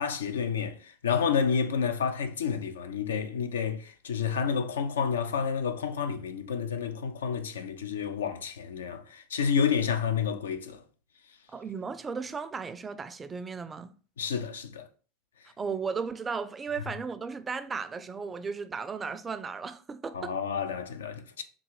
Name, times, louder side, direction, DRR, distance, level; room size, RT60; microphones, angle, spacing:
voice 1, 0.0-10.8 14.2-14.8 20.1-21.4, left 6 dB, 75° left, 0.4 m, -30 dB
voice 2, 11.5-13.9 15.6-20.4, right 5 dB, 20° right, 0.3 m, -35 dB
3.6 x 2.4 x 3.0 m
figure-of-eight pair, 80°, 0 cm